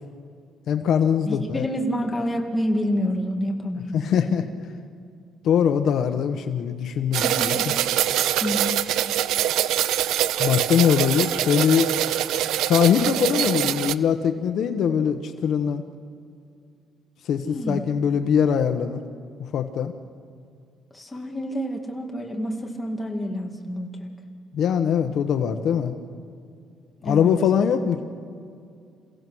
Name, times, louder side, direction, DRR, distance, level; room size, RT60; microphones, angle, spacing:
voice 1, 0.7-1.7 3.9-4.5 5.4-7.5 10.4-11.9 12.6-15.8 17.3-19.0 19.5-19.9 24.5-25.9 27.0-28.0, left 8 dB, 55° left, 7 dB, 1.0 m, -22 dB
voice 2, 1.3-3.9 7.2-7.7 8.4-8.7 17.4-17.8 20.9-24.1 27.0-27.3, equal, 10° left, 1 dB, 2.0 m, -28 dB
sound 1, 7.1-13.9, right 12 dB, 80° right, 0.6 m, -24 dB
28.0 x 16.0 x 6.2 m, 2.3 s
cardioid pair, 160°, 0 cm